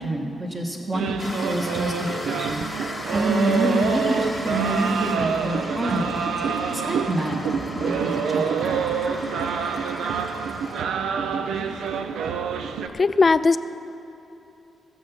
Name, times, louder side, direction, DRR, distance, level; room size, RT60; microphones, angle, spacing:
voice 1, 0.0-2.6 3.1-4.0 4.4-6.1 6.7-7.4 7.7-8.7, right 1 dB, 30° right, -1 dB, 1.6 m, -26 dB
sound 1, 0.9-12.9, right 6 dB, 85° right, 0.6 m, -27 dB
sound 2, 1.2-10.8, left 2 dB, 15° left, 1.2 m, -36 dB
voice 2, 13.0-13.6, left 4 dB, 35° left, 14 dB, 0.4 m, -17 dB
16.0 x 7.1 x 7.4 m, 2.9 s
cardioid pair, 110°, 0 cm